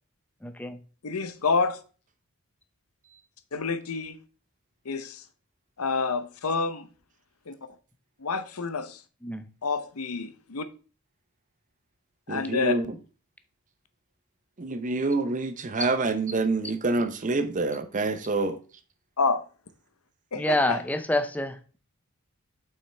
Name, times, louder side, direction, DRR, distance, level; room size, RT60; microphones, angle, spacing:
voice 1, 0.4-0.8 9.2-9.4 20.3-21.6, left 1 dB, 5° left, 0.5 m, -27 dB
voice 2, 1.0-1.8 3.5-4.2 4.8-5.2 5.8-6.9 7.5-7.6 8.2-9.0 9.6-10.7 12.3-12.7 19.2-19.4 20.3-20.8, left 4 dB, 80° left, 0.8 m, -28 dB
voice 3, 12.3-13.0 14.6-18.6, right 3 dB, 35° right, 0.7 m, -27 dB
7.2 x 5.6 x 3.3 m
head